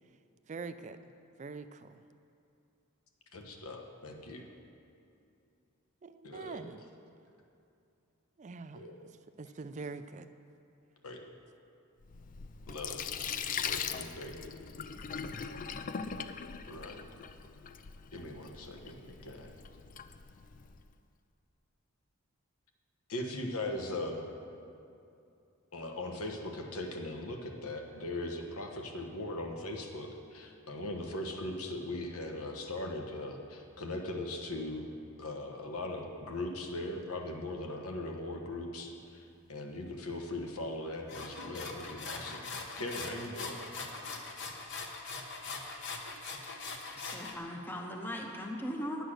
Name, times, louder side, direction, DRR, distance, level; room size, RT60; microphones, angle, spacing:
voice 1, 0.5-1.0 1.4-1.9 6.0-6.8 8.4-10.3, right 4 dB, 35° right, 10 dB, 0.4 m, -44 dB
voice 2, 3.3-4.4 6.2-6.6 8.7-9.0 11.0-11.2 12.7-13.0 13.6-14.4 16.7-17.0 18.1-19.6 23.1-24.2 25.7-34.9 35.2-42.4 42.8-43.6, left 1 dB, 75° left, 2 dB, 1.2 m, -39 dB
Sink (filling or washing), 12.0-20.8, left 7 dB, 35° left, 0.4 m, -41 dB
sound 1, 41.1-47.3, left 3 dB, 55° left, 1.0 m, -42 dB
voice 3, 46.9-49.0, equal, 10° left, 1 dB, 0.7 m, -39 dB
10.0 x 8.1 x 6.4 m, 2.6 s
head